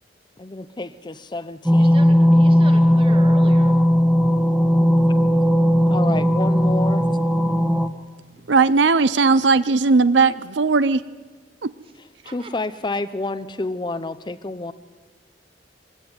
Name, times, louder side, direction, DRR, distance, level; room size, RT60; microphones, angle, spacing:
voice 1, 0.4-2.0 5.9-7.1 12.3-14.7, left 2 dB, 25° left, 13 dB, 0.7 m, -29 dB
sound 1, 1.7-7.9, equal, ahead, 1.6 m, -16 dB
voice 2, 1.7-3.8 12.2-12.5, right 2 dB, 30° right, 5 dB, 2.5 m, -39 dB
voice 3, 8.5-11.0 11.6-11.7, right 4 dB, 85° right, 16 dB, 0.6 m, -17 dB
22.5 x 16.5 x 9.6 m, 1.4 s
head